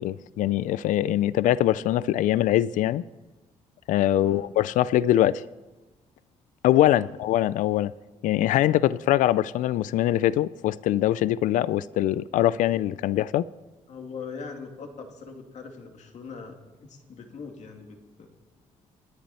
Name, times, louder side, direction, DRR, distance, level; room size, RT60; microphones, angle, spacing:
voice 1, 0.0-3.0 3.9-5.4 6.6-7.9 8.2-13.5, left 13 dB, 85° left, 0.4 m, -23 dB
voice 2, 13.9-18.3, left 5 dB, 65° left, 2.6 m, -41 dB
27.0 x 10.5 x 4.2 m
cardioid pair, 80°, 13 cm